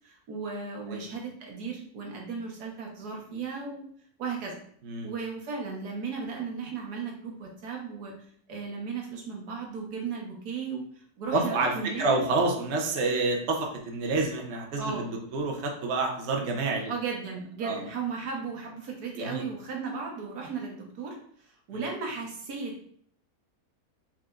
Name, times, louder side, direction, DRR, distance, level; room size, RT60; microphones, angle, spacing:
voice 1, 0.0-3.8 4.2-4.5 5.0-8.1 8.5-10.8 11.2-12.2 14.8-15.1 16.9-21.2 21.7-22.9, right 5 dB, 80° right, 0 dB, 1.6 m, -35 dB
voice 2, 11.3-16.9 17.6-17.8 19.2-19.4 21.7-21.8, right 3 dB, 55° right, 1 dB, 0.9 m, -28 dB
4.9 x 4.2 x 2.4 m, 0.62 s
omnidirectional pair, 1.6 m